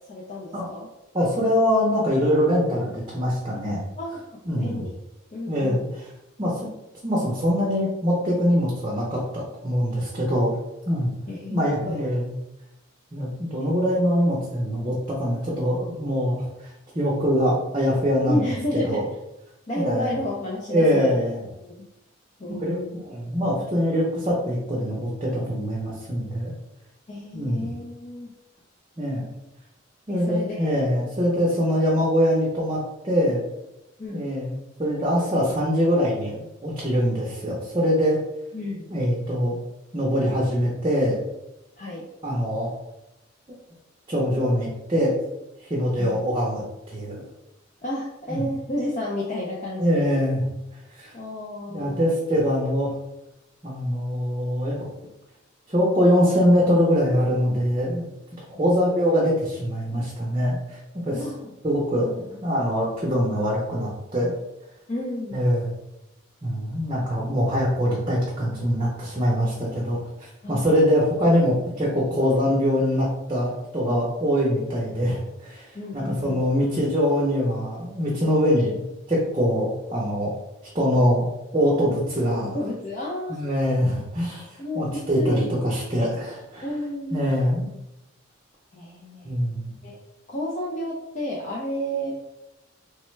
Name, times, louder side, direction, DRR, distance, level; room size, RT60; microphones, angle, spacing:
voice 1, 0.1-0.9 4.0-4.9 5.3-5.9 11.3-12.0 18.2-19.0 19.7-21.2 21.6-21.9 22.4-23.0 27.1-28.3 30.1-30.8 34.0-34.3 38.5-38.9 41.8-42.1 46.0-46.2 47.8-50.1 51.1-52.1 58.5-58.6 61.1-61.5 62.2-62.3 64.9-65.4 70.4-70.7 75.7-76.4 82.4-83.4 84.6-85.4 86.6-87.5 88.7-89.3 89.8-90.0 90.3-92.1, left 1 dB, 35° left, -4 dB, 0.4 m, -31 dB
voice 2, 1.1-3.8 4.5-4.8 5.5-6.1 6.4-6.7 7.0-10.5 10.9-11.1 11.5-12.3 13.1-16.7 16.9-19.0 19.8-20.1 20.7-21.4 22.5-26.5 27.3-27.7 29.0-29.2 30.1-33.4 34.1-38.2 38.9-39.6 39.9-41.2 42.2-42.7 44.1-45.1 45.6-47.2 48.3-48.4 49.8-50.4 51.0-51.1 51.7-52.9 53.6-54.8 55.7-58.0 58.6-61.2 61.6-62.1 62.4-64.3 65.3-65.7 66.4-78.8 79.1-80.3 80.7-81.2 81.5-82.6 83.3-84.5 84.7-86.6 87.1-87.7 89.2-89.7, equal, 25° right, -5 dB, 0.6 m, -23 dB
3.2 x 2.2 x 3.1 m, 0.89 s
head